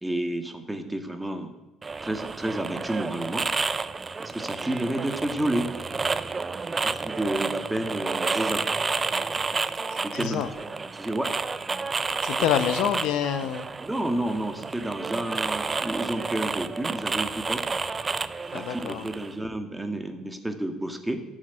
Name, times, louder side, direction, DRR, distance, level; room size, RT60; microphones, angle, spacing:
voice 1, 0.0-1.5 2.0-3.5 4.2-5.7 6.8-8.7 10.0-11.3 13.8-17.7 18.5-21.2, right 1 dB, 10° right, 7 dB, 1.9 m, -30 dB
sound 1, 1.8-19.3, right 4 dB, 30° right, 0.6 m, -30 dB
voice 2, 10.1-10.5 12.2-13.7 18.5-19.0, left 10 dB, 70° left, 10 dB, 0.9 m, -26 dB
11.5 x 6.5 x 9.1 m, 1.0 s
hypercardioid pair, 60°, 0 cm